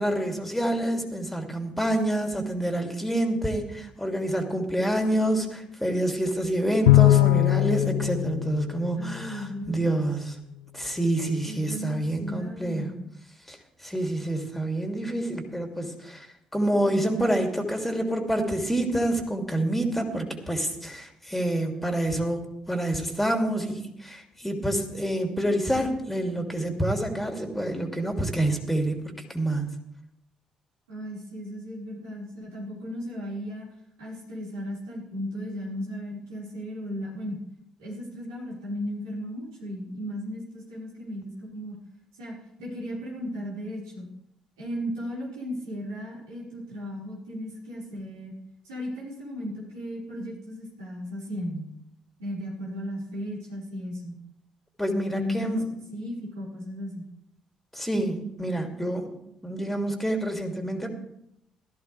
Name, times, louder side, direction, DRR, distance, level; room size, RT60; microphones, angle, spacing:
voice 1, 0.0-10.4 10.7-12.8 13.5-13.6 13.8-16.3 16.5-22.4 22.7-29.7 54.8-55.6 57.7-59.1 59.4-60.9, right 1 dB, 5° left, 3 dB, 2.8 m, -27 dB
Bowed string instrument, 6.9-9.5, left 16 dB, 75° left, 0.6 m, -21 dB
voice 2, 9.0-10.0 11.4-13.0 30.9-33.7 34.0-37.4 37.8-41.8 42.2-44.1 44.6-48.3 48.6-51.7 52.2-54.1 54.9-55.6 55.9-57.1, equal, 75° right, -6 dB, 5.2 m, -35 dB
16.5 x 13.5 x 3.5 m, 0.80 s
figure-of-eight pair, 45°, 2 cm